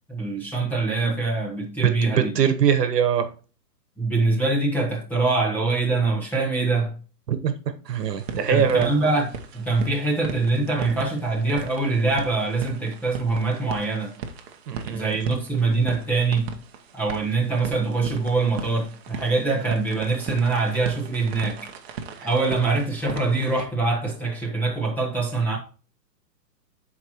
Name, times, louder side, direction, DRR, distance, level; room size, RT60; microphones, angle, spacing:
voice 1, 0.1-2.3 4.0-6.9 8.3-9.3 9.5-14.1 14.9-16.5 16.9-21.6 22.2-25.6, right 3 dB, 5° left, 1.3 m, -24 dB
voice 2, 2.1-3.3 7.3-8.9 14.7-15.1, right 7 dB, 70° right, 1.3 m, -22 dB
sound 1, 7.8-23.7, right 5 dB, 40° right, 1.0 m, -38 dB
13.5 x 4.7 x 2.9 m
hypercardioid pair, 155°, 49 cm